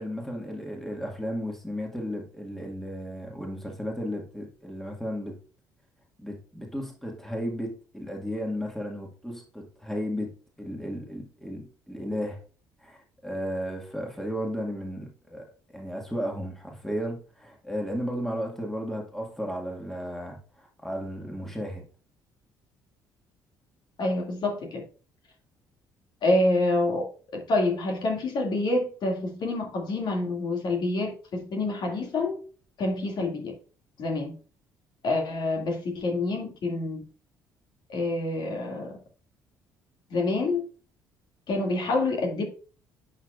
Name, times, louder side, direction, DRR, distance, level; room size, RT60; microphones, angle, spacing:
voice 1, 0.0-5.4 6.2-10.3 10.6-12.4 12.8-21.9, equal, 5° left, 2.1 m, -34 dB
voice 2, 24.0-24.8 26.2-27.1 27.3-32.4 32.8-33.5 34.0-34.3 35.0-37.0 37.9-39.0 40.1-40.6 41.5-42.4, left 2 dB, 50° left, 2.4 m, -27 dB
11.0 x 6.5 x 2.5 m
figure-of-eight pair, 50°, 10 cm